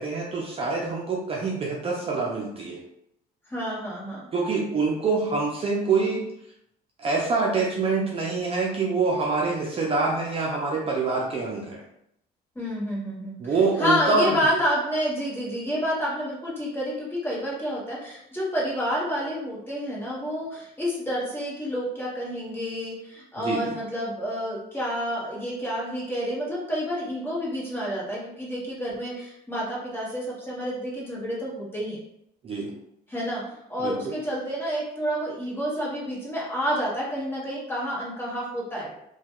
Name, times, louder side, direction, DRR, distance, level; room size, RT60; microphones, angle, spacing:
voice 1, 0.0-2.8 4.3-6.2 7.0-11.8 13.4-14.5 23.4-23.7 32.4-32.7 33.8-34.1, right 4 dB, 35° right, -2 dB, 0.5 m, -25 dB
voice 2, 3.5-4.2 12.5-32.0 33.1-38.9, equal, 15° left, -6 dB, 1.3 m, -29 dB
2.9 x 2.3 x 2.9 m, 0.78 s
cardioid pair, 110°, 17 cm